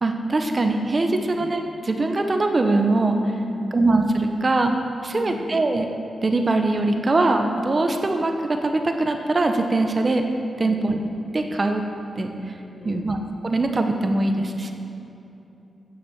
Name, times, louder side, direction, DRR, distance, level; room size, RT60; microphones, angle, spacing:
voice 1, 0.0-3.2 3.7-4.7 5.0-5.9 6.2-10.2 10.6-10.9 11.3-11.8 12.2-12.3 12.8-13.2 13.4-14.7, right 2 dB, 35° right, 5 dB, 0.9 m, -22 dB
voice 2, 3.4-3.8 5.1-5.5 10.6-10.9 12.7-13.1, left 1 dB, 65° left, -3 dB, 2.4 m, -37 dB
9.8 x 6.9 x 7.0 m, 2.8 s
cardioid pair, 95°, 0 cm